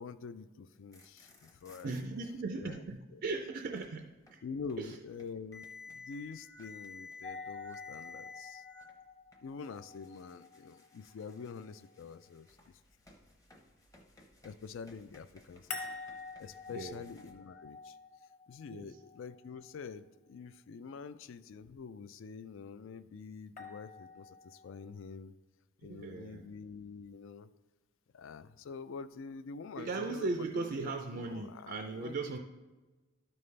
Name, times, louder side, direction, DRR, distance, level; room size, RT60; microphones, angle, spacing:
voice 1, 0.0-1.9 2.6-2.8 3.1-3.2 4.4-8.6 9.4-12.8 14.4-15.9 16.4-18.0 18.5-25.3 25.8-27.5 28.1-32.1, left 5 dB, 60° left, 14 dB, 0.3 m, -46 dB
sound 1, 0.7-2.0 3.2-17.3, left 4 dB, 15° left, 0.7 m, -55 dB
voice 2, 1.8-4.4 4.8-5.0 16.7-17.0 18.7-19.0 25.8-26.4 29.8-32.4, right 3 dB, 45° right, 4 dB, 0.4 m, -38 dB
sound 2, 7.2-12.2 15.7-19.8 23.6-24.8, left 4 dB, 35° left, 1.1 m, -48 dB
12.5 x 5.4 x 3.3 m, 1.2 s
head